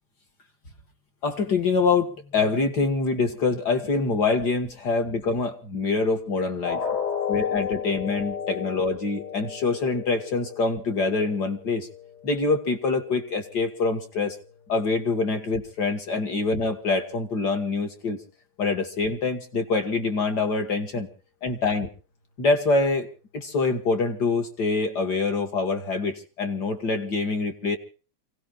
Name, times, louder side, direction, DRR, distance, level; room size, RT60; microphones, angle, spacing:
voice 1, 1.2-6.8 7.3-11.9 12.2-14.4 14.7-18.2 18.6-21.1 21.4-21.9 22.4-27.8, left 3 dB, 50° left, 7 dB, 1.3 m, -25 dB
sound 1, 6.6-12.6 13.0-13.2 13.7-13.8, left 7 dB, 85° left, 4.3 m, -33 dB
29.0 x 17.5 x 2.5 m, 0.38 s
omnidirectional pair, 4.4 m